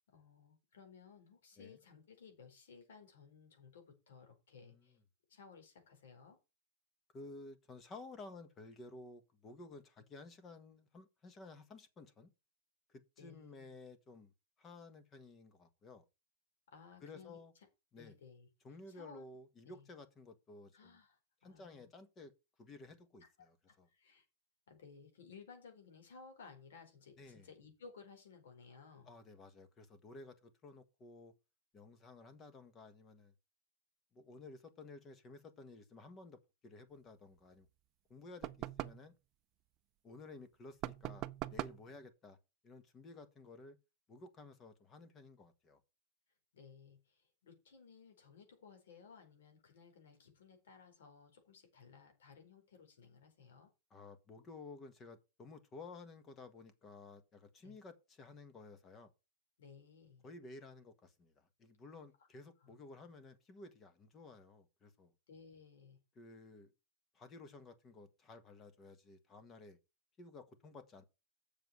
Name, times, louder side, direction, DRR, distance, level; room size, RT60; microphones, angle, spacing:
voice 1, 0.1-5.0 5.3-6.4 13.2-13.8 16.7-17.4 17.9-18.5 18.9-19.2 19.6-19.9 20.7-21.9 23.2-24.2 24.7-29.1 46.5-53.7 57.6-57.8 59.6-60.2 62.2-62.3 62.6-62.8 65.3-66.0, left 5 dB, 90° left, 4.7 m, -58 dB
voice 2, 7.1-12.3 13.2-14.3 14.6-16.0 17.0-17.5 17.9-18.1 18.6-21.0 21.4-22.3 22.6-23.9 27.2-27.5 29.1-31.3 31.7-33.3 34.1-37.7 38.1-39.1 40.0-42.4 42.6-43.8 44.1-45.8 53.9-59.1 60.2-65.1 66.1-66.7 67.1-69.8 70.2-71.0, left 3 dB, 20° left, 1.4 m, -54 dB
sound 1, 38.4-39.1 40.8-41.9, right 15 dB, 30° right, 0.6 m, -42 dB
7.6 x 6.9 x 6.1 m
supercardioid pair, 165°, 0 cm